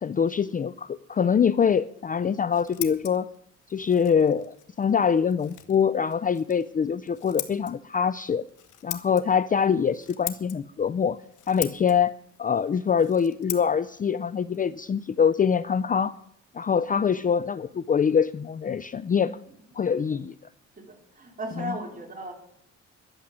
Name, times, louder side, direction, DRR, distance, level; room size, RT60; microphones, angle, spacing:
voice 1, 0.0-3.3 3.7-8.5 8.8-11.2 11.5-12.1 12.4-16.2 16.5-19.3 19.8-20.3 21.6-21.8, left 7 dB, 30° left, 15 dB, 0.4 m, -24 dB
Scissors, 2.2-15.8, left 12 dB, 80° left, 1.3 m, -42 dB
voice 2, 20.8-22.3, right 1 dB, 30° right, 2 dB, 3.9 m, -37 dB
12.0 x 7.4 x 9.9 m, 0.70 s
cardioid pair, 90°, 30 cm